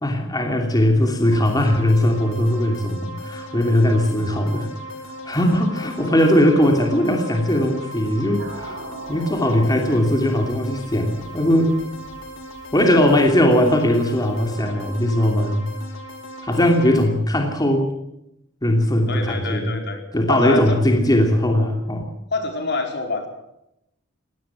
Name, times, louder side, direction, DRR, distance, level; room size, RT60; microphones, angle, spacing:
voice 1, 0.0-4.7 5.2-8.8 9.1-11.8 12.7-15.7 16.4-17.9 18.6-19.8 20.1-22.0, left 1 dB, 20° left, 2 dB, 2.9 m, -19 dB
sound 1, 1.2-17.1, equal, 80° left, 4.4 m, -37 dB
sound 2, 8.4-14.6, right 2 dB, 70° right, 5.9 m, -42 dB
voice 2, 19.1-20.0 20.3-20.8 22.3-23.3, left 3 dB, 55° left, 4 dB, 4.7 m, -26 dB
21.5 x 17.5 x 7.5 m, 0.83 s
head